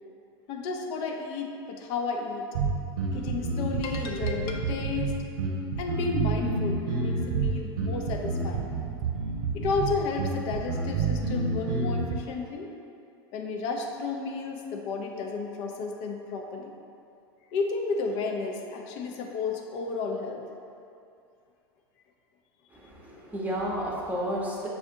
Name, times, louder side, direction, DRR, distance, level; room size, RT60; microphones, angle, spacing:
voice 1, 0.5-2.5 3.1-5.1 5.8-8.7 9.5-12.7 13.3-16.7 17.5-20.4, left 4 dB, 45° left, 2 dB, 0.5 m, -32 dB
sound 1, 2.5-12.1, right 4 dB, 60° right, 0.7 m, -29 dB
voice 2, 22.7-24.7, equal, 10° right, -4 dB, 0.8 m, -32 dB
6.2 x 2.4 x 2.7 m, 2.5 s
figure-of-eight pair, 85°, 13 cm